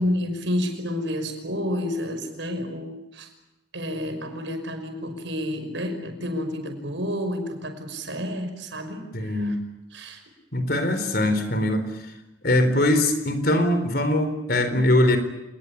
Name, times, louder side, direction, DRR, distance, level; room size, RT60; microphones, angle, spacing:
voice 1, 0.0-3.3 3.7-9.5 9.9-10.2, left 1 dB, 90° right, 7 dB, 5.6 m, -30 dB
voice 2, 9.1-9.6 10.5-12.1 12.4-15.2, left 1 dB, 55° left, 9 dB, 4.1 m, -22 dB
28.0 x 20.0 x 8.4 m, 0.94 s
head